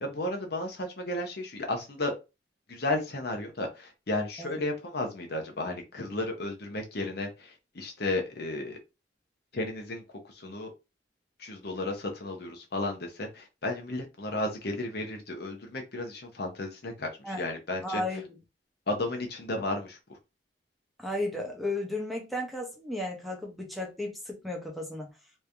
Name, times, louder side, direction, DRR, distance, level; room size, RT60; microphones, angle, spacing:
voice 1, 0.0-2.1 2.7-8.8 9.5-10.7 11.4-18.2 18.9-20.2, left 2 dB, 55° left, 0.9 m, -33 dB
voice 2, 17.8-18.2 21.0-25.1, left 1 dB, ahead, 0.8 m, -34 dB
3.3 x 2.6 x 3.4 m
head